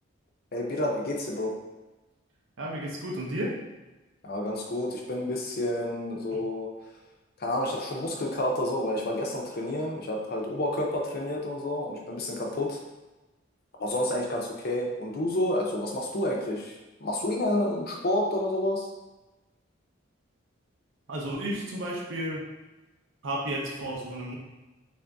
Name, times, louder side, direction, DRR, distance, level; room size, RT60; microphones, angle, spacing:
voice 1, 0.5-1.5 4.2-6.7 7.4-12.8 13.8-16.7 17.0-18.9, left 1 dB, 50° left, -1 dB, 0.6 m, -29 dB
voice 2, 2.6-3.6 21.1-22.5 23.2-24.4, right 1 dB, 75° right, -2 dB, 0.7 m, -32 dB
3.5 x 2.6 x 3.4 m, 1.1 s
head